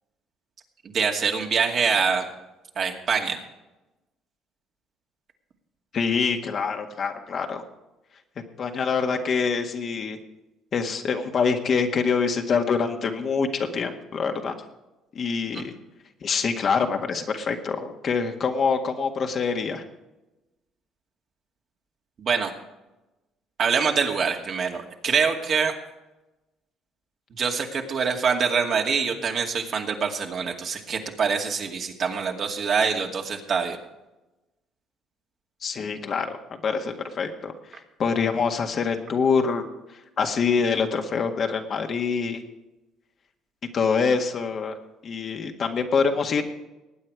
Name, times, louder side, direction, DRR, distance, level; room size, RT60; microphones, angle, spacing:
voice 1, 0.8-2.3 2.8-3.4 15.5-15.7 22.2-22.5 23.6-25.7 27.4-33.8, right 6 dB, 55° right, 2 dB, 2.3 m, -25 dB
voice 2, 5.9-7.6 8.6-10.2 10.7-14.6 15.1-15.7 16.2-19.8 35.6-36.4 36.6-39.6 40.2-42.4 43.7-44.7 45.0-46.4, left 5 dB, 50° left, 4 dB, 1.8 m, -25 dB
19.5 x 8.9 x 4.9 m, 1.0 s
supercardioid pair, 70°, 0 cm